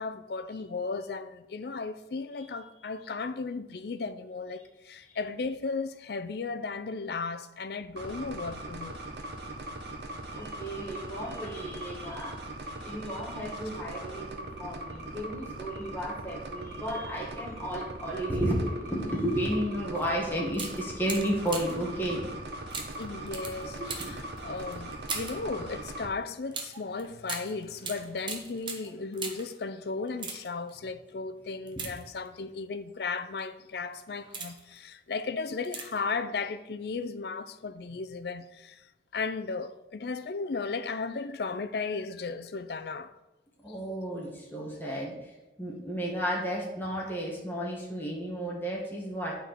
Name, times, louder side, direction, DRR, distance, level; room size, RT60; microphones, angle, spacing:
voice 1, 0.0-9.0 23.0-38.8 39.1-43.1, left 4 dB, 60° left, 0.5 m, -35 dB
sound 1, 8.0-26.1, right 1 dB, 70° right, 1.1 m, -40 dB
voice 2, 10.3-12.4 12.7-22.3 23.6-24.1 43.6-45.3 45.6-49.3, equal, 10° left, 1.6 m, -33 dB
sound 2, 20.0-20.1 20.5-21.9 22.7-25.5 26.5-29.6 30.1-30.7 31.7-32.5 33.2-33.4 34.0-34.8 35.6-36.1 36.4-36.5, right 4 dB, 25° right, 0.9 m, -40 dB
8.8 x 4.5 x 5.0 m
head